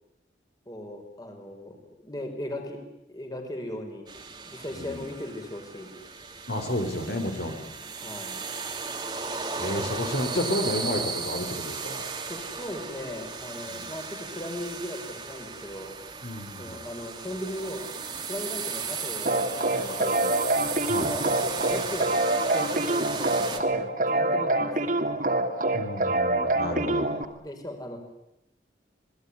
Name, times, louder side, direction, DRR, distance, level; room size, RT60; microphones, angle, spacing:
voice 1, 0.6-2.8 3.1-4.1 4.4-5.9 8.0-8.4 12.2-15.9 16.6-17.8 18.2-20.3 21.0-25.0 26.9-27.0 27.4-28.0, left 1 dB, 20° left, 4 dB, 5.2 m, -38 dB
sound 1, 4.1-23.6, right 5 dB, 25° right, 2.7 m, -36 dB
voice 2, 6.5-7.7 9.5-12.0 13.7-13.9 16.2-16.8 20.9-21.1 25.7-27.1, left 1 dB, 65° left, 5 dB, 4.2 m, -31 dB
sound 2, 19.2-27.2, right 2 dB, 45° right, 2.8 m, -26 dB
27.0 x 19.5 x 10.0 m, 0.87 s
head